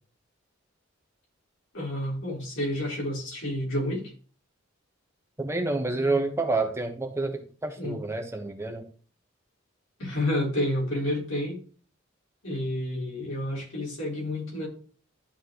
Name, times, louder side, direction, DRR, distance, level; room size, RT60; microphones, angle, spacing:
voice 1, 1.7-4.1 7.8-8.0 10.0-11.6 12.4-14.7, left 1 dB, 70° left, -3 dB, 3.7 m, -30 dB
voice 2, 5.4-8.9, right 2 dB, 15° right, 4 dB, 1.1 m, -28 dB
11.5 x 4.4 x 3.0 m, 0.40 s
head